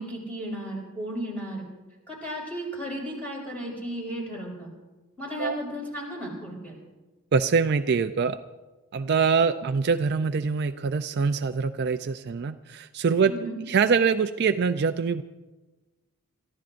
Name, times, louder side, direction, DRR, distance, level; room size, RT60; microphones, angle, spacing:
voice 1, 0.0-1.6 2.1-4.7 5.2-6.7 13.3-13.6, equal, 5° left, -3 dB, 5.2 m, -34 dB
voice 2, 7.3-8.4 8.9-15.2, right 5 dB, 50° right, 9 dB, 0.4 m, -24 dB
29.0 x 14.5 x 2.5 m, 1.2 s
head